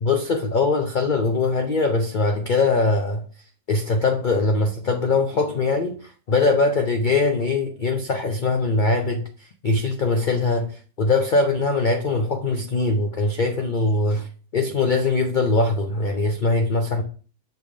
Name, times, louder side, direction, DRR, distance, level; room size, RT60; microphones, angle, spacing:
voice 1, 0.0-3.2 3.7-6.0 6.3-9.2 9.6-14.3 14.5-17.0, left 3 dB, 65° left, 0.4 m, -21 dB
6.5 x 3.5 x 6.1 m
omnidirectional pair, 1.7 m